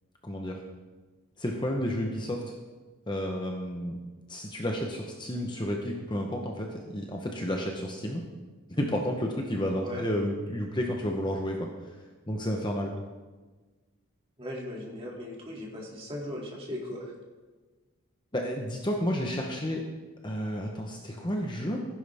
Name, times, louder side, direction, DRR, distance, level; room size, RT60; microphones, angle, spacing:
voice 1, 0.2-0.6 1.4-2.4 3.1-4.0 4.3-8.2 8.8-11.7 12.3-12.9 18.3-19.8 20.2-21.8, equal, 20° left, 1 dB, 1.0 m, -31 dB
voice 2, 14.4-17.1, equal, 25° right, -3 dB, 2.6 m, -38 dB
15.5 x 10.5 x 3.6 m, 1.3 s
head